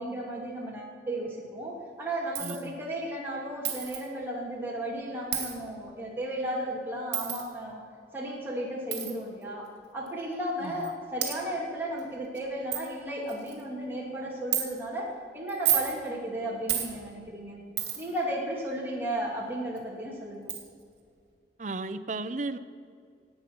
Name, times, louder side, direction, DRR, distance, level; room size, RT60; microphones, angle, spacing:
voice 1, 0.0-7.8 8.1-9.6 9.9-17.6 18.0-20.5, right 1 dB, 10° right, -4 dB, 2.5 m, -34 dB
Coin (dropping), 2.3-2.6 3.6-4.0 5.3-5.5 7.1-7.4 8.9-9.1 10.1-10.2 10.8-10.9 11.2-11.4 12.0-12.1 12.4-12.5 12.7-12.8 13.3-13.6 14.5-14.6 15.5-15.9 16.7-16.9 17.8-18.1 19.8-19.9 20.5-20.6, right 11 dB, 65° right, 2.6 m, -29 dB
voice 2, 2.4-2.8 10.6-10.9 21.6-22.6, right 3 dB, 40° right, 10 dB, 0.5 m, -35 dB
18.5 x 8.6 x 6.1 m, 2.2 s
head